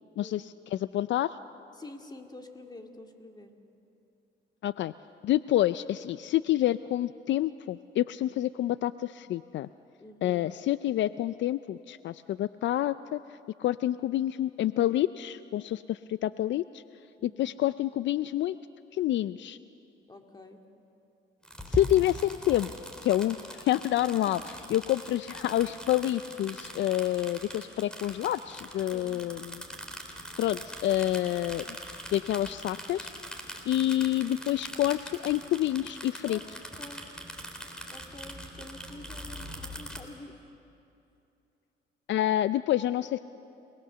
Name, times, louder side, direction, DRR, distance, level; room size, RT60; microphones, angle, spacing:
voice 1, 0.2-1.4 4.6-4.9 5.2-9.7 10.2-16.8 17.2-18.6 18.9-19.6 21.7-22.7 23.0-29.6 30.4-31.8 32.1-33.1 33.7-36.4 42.1-43.2, left 13 dB, 70° left, 15 dB, 0.4 m, -28 dB
voice 2, 1.8-3.6 10.0-10.4 17.2-17.4 20.1-20.6 24.2-24.3 28.9-29.2 36.3-36.4 36.8-37.0 37.9-40.4, left 2 dB, 20° left, 4 dB, 2.3 m, -47 dB
sound 1, 21.4-40.0, equal, 5° left, 3.4 m, -42 dB
28.5 x 20.5 x 6.9 m, 2.8 s
cardioid pair, 90°, 20 cm